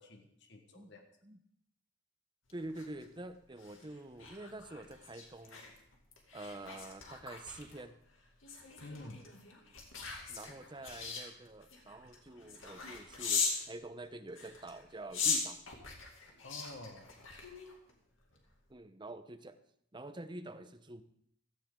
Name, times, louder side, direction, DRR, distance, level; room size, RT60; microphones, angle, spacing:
voice 1, 0.0-1.0 8.8-9.2 16.4-17.1, left 2 dB, 60° left, 4 dB, 1.4 m, -49 dB
sound 1, 2.5-13.7 14.3-17.9 18.3-18.6, left 5 dB, 85° left, 2.4 m, -40 dB
voice 2, 2.5-5.6 6.3-8.0 10.3-15.6 18.7-19.6 19.9-21.0, right 2 dB, 25° right, 9 dB, 0.8 m, -47 dB
16.0 x 13.5 x 3.8 m, 0.69 s
head